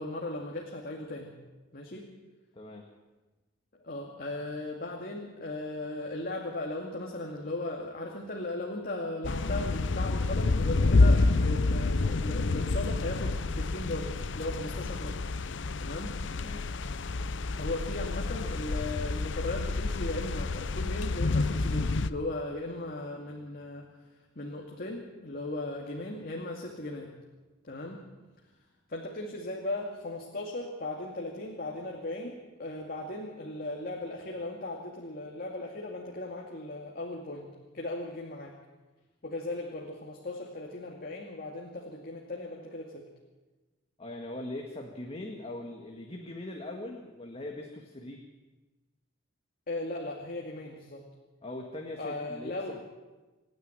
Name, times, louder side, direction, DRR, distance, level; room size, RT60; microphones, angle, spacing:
voice 1, 0.0-1.3 1.7-2.0 3.8-15.2 15.8-16.1 17.6-23.9 24.4-27.1 27.6-28.0 28.9-37.5 37.7-38.5 39.2-43.1 49.7-51.0 52.0-52.8, left 2 dB, 50° left, 0 dB, 2.3 m, -37 dB
voice 2, 2.5-2.9 16.4-16.8 44.0-48.3 51.4-52.8, left 1 dB, 30° left, 2 dB, 1.8 m, -41 dB
sound 1, 9.2-22.1, left 3 dB, 65° left, 0.7 m, -28 dB
27.0 x 9.8 x 9.9 m, 1.2 s
head